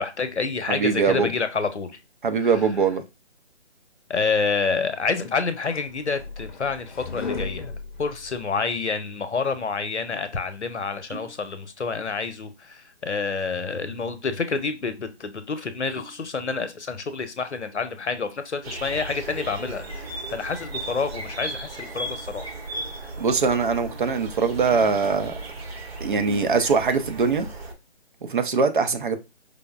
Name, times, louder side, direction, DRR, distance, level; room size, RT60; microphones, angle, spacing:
voice 1, 0.0-2.0 2.4-2.6 4.1-7.7 8.0-22.5, left 4 dB, 90° left, 0.7 m, -28 dB
voice 2, 0.7-1.3 2.2-3.0 23.2-25.3 26.0-27.5 28.3-29.2, right 5 dB, 50° right, 0.5 m, -22 dB
sound 1, 5.2-8.8, left 4 dB, 45° left, 0.6 m, -36 dB
sound 2, 11.1-11.4 11.7-12.3 12.6-12.8 13.5-14.0 14.4-14.5 14.8-15.0 15.7-16.2 16.7-17.0, right 3 dB, 20° right, 0.8 m, -45 dB
sound 3, 18.6-27.7, right 2 dB, 65° right, 1.0 m, -36 dB
4.9 x 2.1 x 2.3 m
figure-of-eight pair, 145°, 33 cm